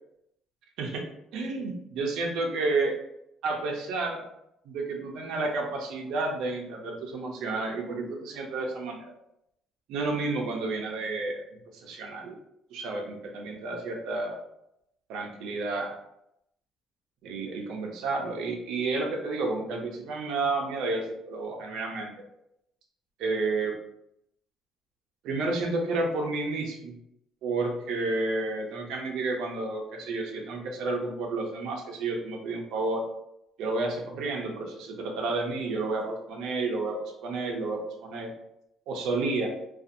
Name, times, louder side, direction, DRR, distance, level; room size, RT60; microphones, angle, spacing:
voice 1, 1.3-3.0 3.4-4.2 4.7-9.0 9.9-11.4 11.8-12.4 12.7-14.4 15.1-16.0 17.2-22.1 23.2-23.7 25.2-26.9 27.4-33.0 33.6-36.9 37.2-38.3 38.9-39.5, right 3 dB, 80° right, 1 dB, 0.5 m, -31 dB
2.5 x 2.3 x 2.6 m, 0.79 s
cardioid pair, 125°, 0 cm